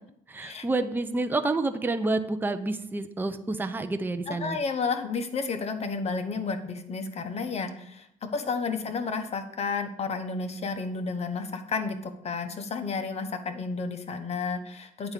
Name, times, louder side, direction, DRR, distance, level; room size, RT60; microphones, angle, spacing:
voice 1, 0.3-4.6 8.2-8.7, right 2 dB, 10° right, 8 dB, 0.6 m, -29 dB
voice 2, 4.3-15.1, left 4 dB, 40° left, 7 dB, 1.3 m, -32 dB
9.2 x 4.7 x 7.4 m, 0.75 s
cardioid pair, 110°, 17 cm